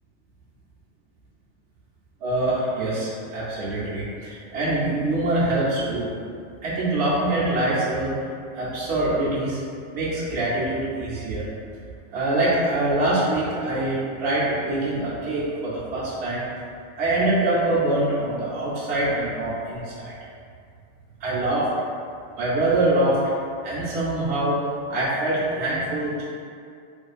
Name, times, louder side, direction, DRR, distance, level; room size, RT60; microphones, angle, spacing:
voice 1, 2.2-6.1 6.6-8.1 8.5-9.6 9.9-11.5 12.1-16.4 17.0-20.1 21.2-21.7 22.4-23.2 23.6-24.6 24.9-26.2, right 1 dB, 65° right, -9 dB, 1.0 m, -24 dB
2.7 x 2.5 x 2.4 m, 2.3 s
omnidirectional pair, 1.3 m